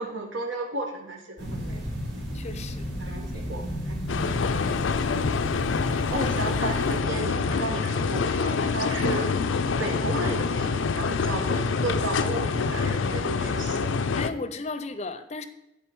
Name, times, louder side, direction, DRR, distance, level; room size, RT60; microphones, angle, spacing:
voice 1, 0.0-1.9 3.0-4.0 4.5-4.6 6.1-9.3 9.8-14.0, right 2 dB, 85° right, 1 dB, 1.7 m, -33 dB
sound 1, 1.4-7.0, equal, 70° right, 3.1 m, -34 dB
voice 2, 2.3-2.9 4.1-4.3 5.9-6.3 14.1-15.4, left 3 dB, 35° left, 11 dB, 0.5 m, -35 dB
sound 2, 4.1-14.3, left 5 dB, 85° left, 0.4 m, -26 dB
11.5 x 3.9 x 4.6 m, 0.92 s
head